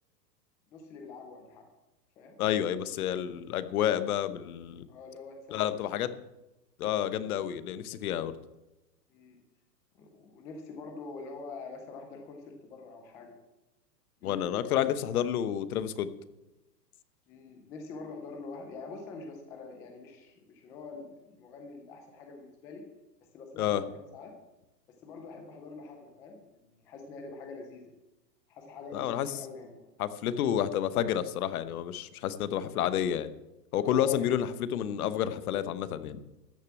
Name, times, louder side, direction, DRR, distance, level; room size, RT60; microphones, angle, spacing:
voice 1, 0.7-1.7 2.2-2.3 4.9-5.9 9.1-9.4 9.9-13.4 14.2-14.8 17.3-22.8 23.3-24.3 25.0-27.9 28.5-29.9 33.8-34.4, left 3 dB, 5° left, 3 dB, 0.4 m, -45 dB
voice 2, 2.4-4.8 5.5-6.1 6.8-8.3 14.2-16.1 23.6-23.8 28.9-29.3 30.0-33.3 33.7-36.2, left 10 dB, 60° left, 13 dB, 1.1 m, -30 dB
13.5 x 6.7 x 8.3 m, 0.98 s
hypercardioid pair, 135°, 50 cm